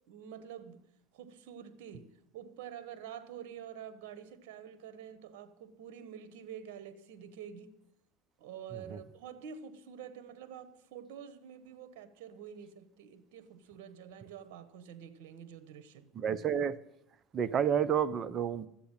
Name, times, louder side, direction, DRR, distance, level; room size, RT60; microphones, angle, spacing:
voice 1, 0.1-0.8 1.1-7.8 8.4-16.1, right 8 dB, 75° right, 1.2 m, -48 dB
voice 2, 16.2-16.8 17.3-18.7, right 8 dB, 35° right, 0.8 m, -30 dB
13.0 x 8.3 x 9.0 m
supercardioid pair, 105°, 0 cm